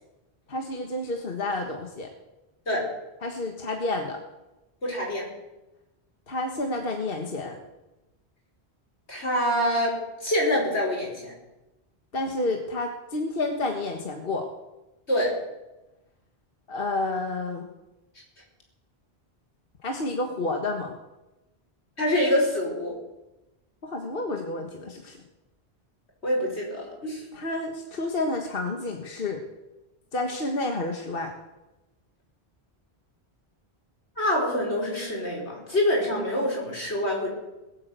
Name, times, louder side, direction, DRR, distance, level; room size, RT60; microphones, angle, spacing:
voice 1, 0.5-2.1 3.2-4.2 6.3-7.6 12.1-14.4 16.7-17.7 19.8-20.9 23.8-25.2 27.3-29.4 30.1-31.3, left 2 dB, 60° left, 3 dB, 1.7 m, -30 dB
voice 2, 4.8-5.3 9.1-10.0 10.2-11.3 15.1-15.3 22.0-22.9 26.2-27.2 34.2-37.3, left 1 dB, 90° left, -2 dB, 5.4 m, -25 dB
20.0 x 8.6 x 8.2 m, 1.0 s
omnidirectional pair, 1.1 m